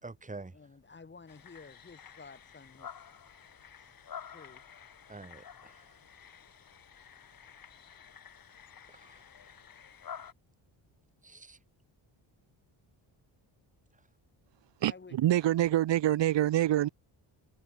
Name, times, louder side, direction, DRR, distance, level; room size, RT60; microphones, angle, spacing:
voice 1, 0.0-0.6 5.1-5.9 8.9-9.2 11.2-11.6, right 3 dB, 15° right, 4.4 m, -47 dB
voice 2, 0.5-2.9 3.8-3.9 4.3-4.7 14.8-15.2, left 4 dB, 20° left, 4.7 m, -52 dB
sound 1, 1.3-10.3, left 8 dB, 45° left, 6.5 m, -50 dB
voice 3, 14.8-16.9, right 13 dB, 60° right, 1.0 m, -26 dB
wide cardioid pair, 165°, 48 cm